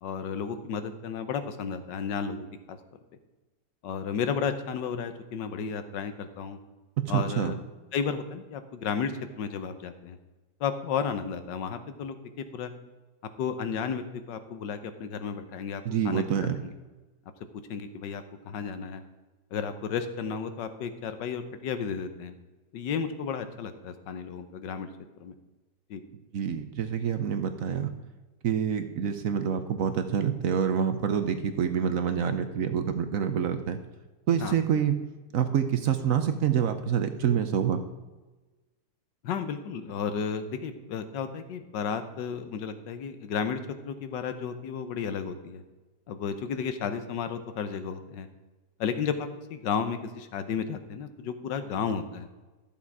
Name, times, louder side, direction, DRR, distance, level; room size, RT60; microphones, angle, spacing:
voice 1, 0.0-2.8 3.8-6.6 7.1-7.6 7.9-10.2 10.6-12.7 13.4-16.7 17.5-19.0 19.5-22.3 22.7-24.9 25.2-25.3 25.9-26.0 34.4-34.6 39.2-45.6 46.1-48.3 48.8-52.3, left 6 dB, 75° left, 10 dB, 1.5 m, -33 dB
voice 2, 7.0-7.5 15.8-16.6 26.3-27.9 28.4-33.8 34.3-35.0 35.3-37.8, right 8 dB, 60° right, 8 dB, 0.9 m, -27 dB
13.5 x 7.2 x 4.7 m, 1.2 s
omnidirectional pair, 1.9 m